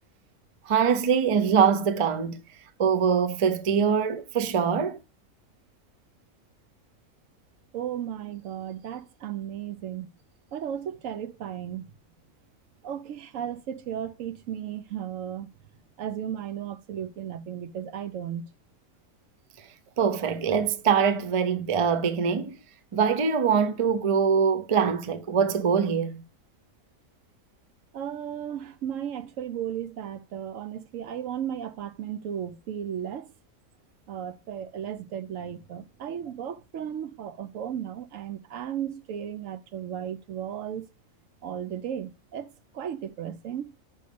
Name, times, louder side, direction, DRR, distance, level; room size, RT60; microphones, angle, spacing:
voice 1, 0.7-2.4 2.8-5.0 20.0-22.6 22.9-26.2, right 6 dB, 40° right, 0.5 m, -23 dB
voice 2, 7.7-10.1 10.5-11.9 12.8-15.5 16.0-18.5 27.9-33.3 34.1-40.9 41.4-43.7, right 9 dB, 70° right, 0.9 m, -35 dB
5.6 x 5.2 x 6.7 m
omnidirectional pair, 1.4 m